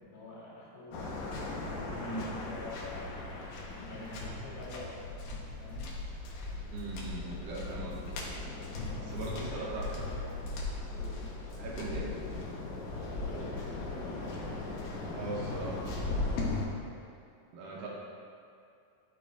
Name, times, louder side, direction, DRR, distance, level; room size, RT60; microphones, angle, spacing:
voice 1, 0.0-1.3 1.9-5.0 5.5-5.9 7.1-8.2 8.7-9.6 10.0-10.2 10.9-11.3 13.1-14.7 17.8-17.9, left 2 dB, 90° left, -7 dB, 4.0 m, -47 dB
Waves surf, 0.9-16.6, left 2 dB, 70° left, 2.4 m, -38 dB
voice 2, 2.0-2.3 6.7-8.1 9.0-9.9 11.5-12.2 15.1-15.8 17.5-17.9, right 3 dB, 75° right, -3 dB, 2.7 m, -40 dB
11.0 x 6.8 x 2.6 m, 2.4 s
omnidirectional pair, 4.7 m